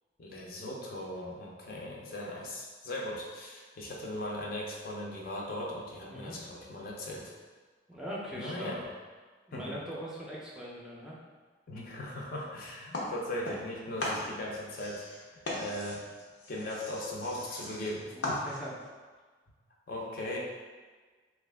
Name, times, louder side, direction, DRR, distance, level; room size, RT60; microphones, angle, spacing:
voice 1, 0.2-7.3 8.3-8.8 9.5-9.8 11.7-15.3 15.6-16.0 16.5-18.4 19.9-20.4, left 1 dB, 55° left, -3 dB, 0.5 m, -38 dB
voice 2, 6.1-6.4 7.9-8.7 9.5-11.2 18.1-18.7, equal, 5° right, -6 dB, 0.5 m, -41 dB
sound 1, 12.9-13.7 14.0-18.9, left 1 dB, 85° left, 0.7 m, -38 dB
2.8 x 2.4 x 3.3 m, 1.4 s
head